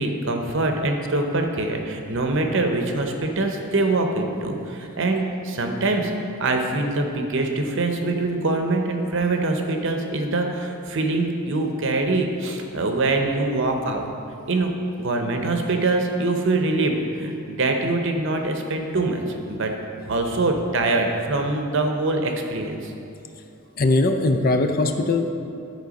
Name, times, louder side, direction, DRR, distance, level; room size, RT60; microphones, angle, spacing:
voice 1, 0.0-6.1 6.4-14.1 14.5-19.2 19.5-19.7 20.1-22.9, right 2 dB, 55° right, 3 dB, 0.8 m, -24 dB
voice 2, 23.8-25.3, left 2 dB, 40° left, 6 dB, 0.5 m, -20 dB
11.5 x 4.5 x 5.2 m, 2.6 s
head